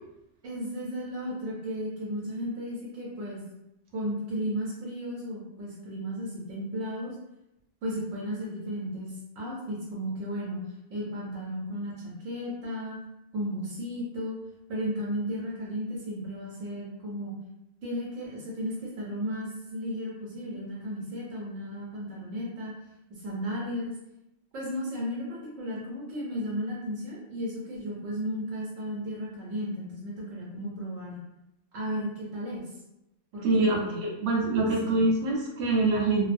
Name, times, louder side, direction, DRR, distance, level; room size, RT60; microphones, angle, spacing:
voice 1, 0.4-3.4 3.9-7.2 7.8-10.6 10.9-13.0 13.3-14.4 14.7-17.3 17.8-22.7 23.1-23.9 24.5-31.2 31.7-32.7 33.3-34.1 34.8-35.0, equal, 90° right, -5 dB, 1.0 m, -34 dB
voice 2, 33.4-36.3, right 2 dB, 70° right, -1 dB, 0.9 m, -25 dB
2.5 x 2.0 x 2.5 m, 0.87 s
omnidirectional pair, 1.3 m